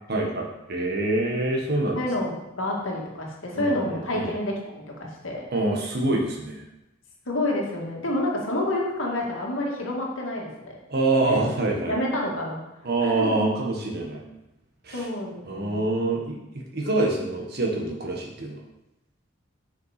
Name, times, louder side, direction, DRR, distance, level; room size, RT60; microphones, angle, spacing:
voice 1, 0.1-2.0 3.5-4.3 5.5-6.6 10.9-12.0 12.8-14.2 14.8-15.1 15.4-16.4 16.7-18.6, right 2 dB, 50° right, 0 dB, 1.6 m, -25 dB
voice 2, 2.0-5.4 7.3-10.8 11.3-11.4 11.9-12.6 13.0-13.4 14.9-15.9, left 1 dB, 75° left, -1 dB, 2.0 m, -28 dB
7.0 x 5.9 x 5.1 m, 0.91 s
head